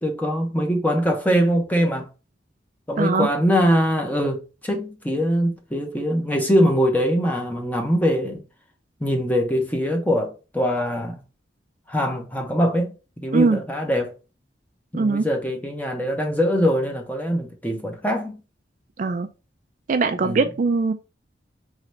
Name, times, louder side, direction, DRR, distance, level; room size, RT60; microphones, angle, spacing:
voice 1, 0.0-2.1 2.9-8.4 9.0-11.2 11.9-14.1 14.9-18.4 20.2-20.5, equal, 10° left, 0.9 m, -22 dB
voice 2, 3.0-3.3 13.3-13.6 14.9-15.3 19.0-19.3 19.9-20.9, right 4 dB, 45° right, 0.3 m, -21 dB
3.8 x 3.2 x 3.1 m
head